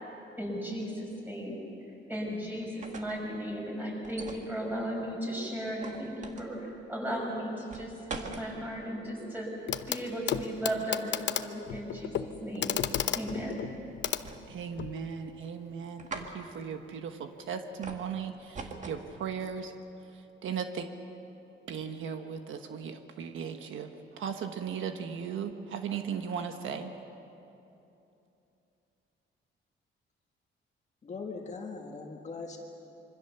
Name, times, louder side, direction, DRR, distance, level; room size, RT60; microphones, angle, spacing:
voice 1, 0.4-1.6 2.1-9.5 9.9-12.1 12.4-12.7 13.1-13.6, equal, 10° right, -2 dB, 6.2 m, -36 dB
sound 1, 2.6-3.2 4.0-4.5 5.8-6.5 7.7-8.5 14.0-14.7 15.0-15.5 16.0-16.3 17.8-18.1 18.5-19.0, right 4 dB, 35° right, 1.9 m, -42 dB
Clock, 9.7-10.0 10.3-15.0 16.2-16.3, left 10 dB, 60° left, 0.9 m, -33 dB
voice 2, 14.5-19.7 20.4-20.9 21.7-26.9, right 7 dB, 70° right, 6 dB, 1.3 m, -37 dB
voice 3, 31.0-32.6, left 4 dB, 35° left, 1 dB, 1.7 m, -40 dB
26.0 x 24.5 x 7.0 m, 2.9 s
cardioid pair, 165°, 21 cm